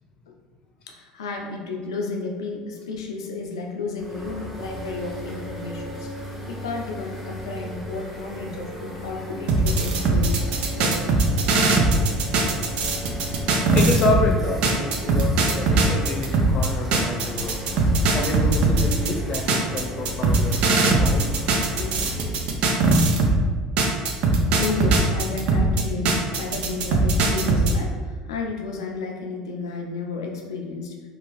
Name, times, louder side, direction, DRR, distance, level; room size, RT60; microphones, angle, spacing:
voice 1, 0.9-10.4 10.7-11.1 24.6-30.9, left 4 dB, 85° left, 1 dB, 0.4 m, -32 dB
sound 1, 4.0-22.3, equal, 5° right, 1.0 m, -36 dB
sound 2, 9.5-14.3 14.6-23.4 23.8-27.7, right 3 dB, 60° right, 0.5 m, -21 dB
voice 2, 13.5-17.6 18.1-21.3 21.8-22.0, left 2 dB, 45° left, 2 dB, 0.6 m, -28 dB
2.7 x 2.3 x 3.1 m, 1.4 s
hypercardioid pair, 75°, 2 cm